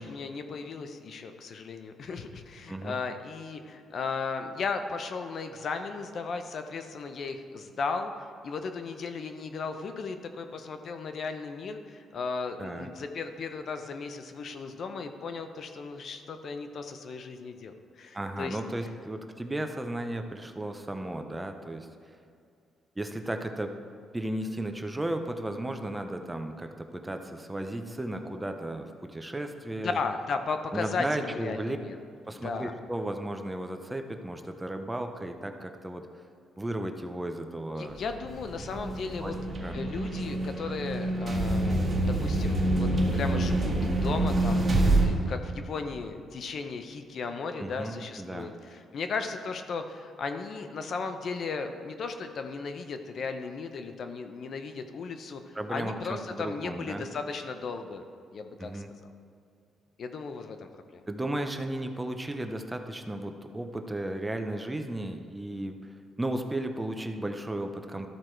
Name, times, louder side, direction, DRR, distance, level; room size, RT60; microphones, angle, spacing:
voice 1, 0.0-18.6 29.7-32.0 32.4-32.7 37.8-39.3 39.7-58.0 58.3-58.8 60.0-61.0, left 4 dB, 55° left, 7 dB, 0.7 m, -36 dB
voice 2, 12.6-12.9 18.1-22.2 23.0-23.7 24.1-30.0 30.7-31.8 32.3-36.2 36.6-38.0 39.2-39.3 39.6-39.8 47.6-48.5 55.5-57.0 58.6-58.9 61.1-68.1, right 1 dB, 10° right, 6 dB, 0.6 m, -35 dB
sound 1, 38.0-45.1, right 1 dB, 35° right, 1.6 m, -27 dB
13.0 x 4.7 x 4.5 m, 2.4 s
cardioid pair, 110°, 0 cm